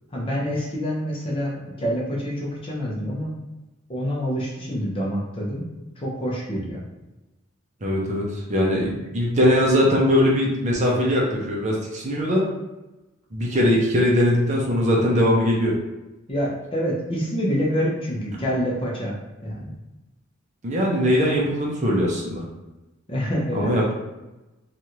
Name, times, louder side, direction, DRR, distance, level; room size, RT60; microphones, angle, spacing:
voice 1, 0.1-3.4 3.9-5.7 6.0-6.8 16.3-19.2 19.4-19.7 23.1-23.7, equal, 25° left, -4 dB, 0.6 m, -26 dB
voice 2, 7.8-12.4 13.3-15.7 20.6-22.4 23.5-23.9, equal, 35° right, -3 dB, 0.6 m, -21 dB
3.1 x 2.4 x 2.8 m, 1.0 s
head